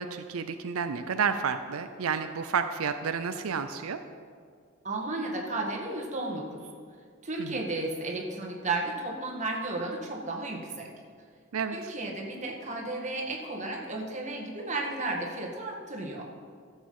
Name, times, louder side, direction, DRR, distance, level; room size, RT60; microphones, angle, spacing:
voice 1, 0.0-4.0 7.4-7.7 11.5-11.9, right 6 dB, 90° right, 9 dB, 0.5 m, -31 dB
voice 2, 4.8-6.6 7.2-10.9 11.7-16.2, right 2 dB, 35° right, 0 dB, 1.7 m, -33 dB
13.5 x 7.4 x 5.4 m, 2.1 s
head